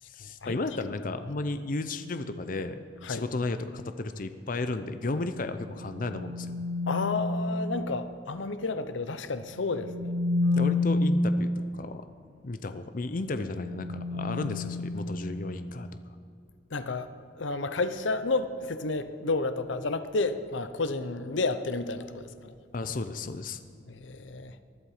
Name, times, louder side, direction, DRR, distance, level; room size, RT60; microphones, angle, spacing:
voice 1, 0.0-2.8 3.1-6.5 10.5-12.0 12.4-15.9 22.7-23.6, left 2 dB, 45° left, 10 dB, 0.6 m, -33 dB
sound 1, 2.0-2.4 5.6-7.4 9.5-11.2 13.2-15.6, left 3 dB, 80° right, 2.3 m, -30 dB
voice 2, 6.9-10.1 16.7-17.1 17.4-22.5 23.9-24.5, left 3 dB, 90° left, 12 dB, 0.8 m, -31 dB
19.5 x 12.0 x 5.0 m, 2.3 s
head